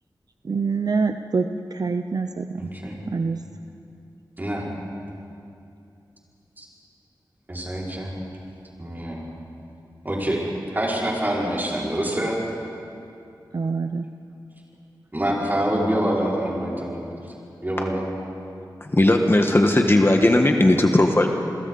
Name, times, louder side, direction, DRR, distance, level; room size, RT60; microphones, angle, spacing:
voice 1, 0.4-2.6 3.1-3.5 13.5-14.1, right 4 dB, 55° right, 7 dB, 0.7 m, -25 dB
voice 2, 2.6-3.0 4.4-4.7 6.6-6.7 7.5-8.1 8.8-9.2 10.0-10.4 10.7-12.4 15.1-17.1 17.6-18.1, right 1 dB, 25° right, -5 dB, 5.6 m, -26 dB
voice 3, 18.8-21.3, left 1 dB, 30° left, 3 dB, 1.4 m, -17 dB
29.0 x 22.0 x 4.1 m, 2.7 s
wide cardioid pair, 65°, 8 cm